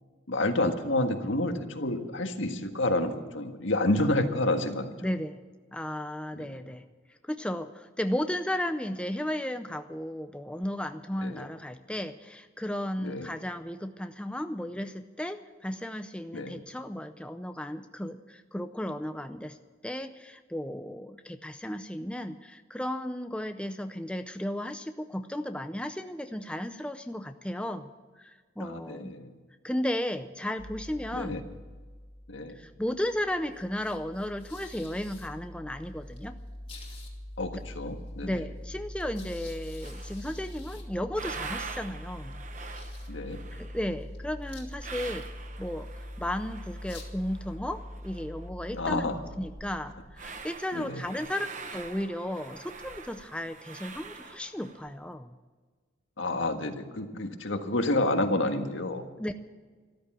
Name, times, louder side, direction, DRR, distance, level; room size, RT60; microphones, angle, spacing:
voice 1, 0.3-4.9 6.3-6.6 11.2-11.4 13.0-13.3 16.3-16.6 28.6-29.3 31.1-31.4 32.3-32.5 37.4-38.3 43.1-43.4 48.7-49.2 50.7-51.0 56.2-59.0, left 1 dB, 80° left, 6 dB, 1.6 m, -29 dB
voice 2, 5.0-5.4 5.7-6.8 7.1-19.6 19.8-27.9 28.2-29.1 29.6-31.4 32.6-36.4 38.2-42.4 43.5-45.2 45.6-45.9 46.2-49.1 49.4-55.4 59.2-59.3, left 1 dB, 5° left, 8 dB, 0.5 m, -34 dB
sound 1, 30.6-50.5, left 1 dB, 25° left, 2.3 m, -43 dB
sound 2, 39.8-40.4 40.8-48.6 48.9-49.0 49.2-55.0, right 4 dB, 40° right, 1.0 m, -45 dB
13.5 x 13.0 x 7.4 m, 1.4 s
head